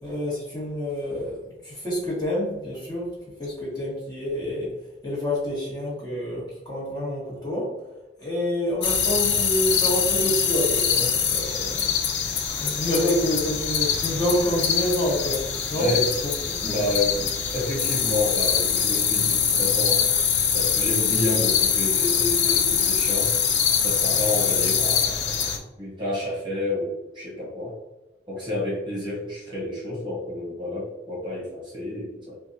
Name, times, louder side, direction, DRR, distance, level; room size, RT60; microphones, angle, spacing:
voice 1, 0.0-1.4 1.6-3.1 3.4-4.7 5.0-7.7 8.2-11.9 12.6-15.9 16.2-16.7, equal, 25° left, -7 dB, 1.4 m, -27 dB
sound 1, 8.8-25.6, left 7 dB, 80° left, 0.5 m, -23 dB
voice 2, 15.8-16.1 16.6-20.0 20.5-23.3 23.8-25.5 25.8-27.7 28.3-32.3, left 2 dB, 25° right, -6 dB, 1.1 m, -29 dB
4.5 x 2.4 x 2.7 m, 1.1 s
head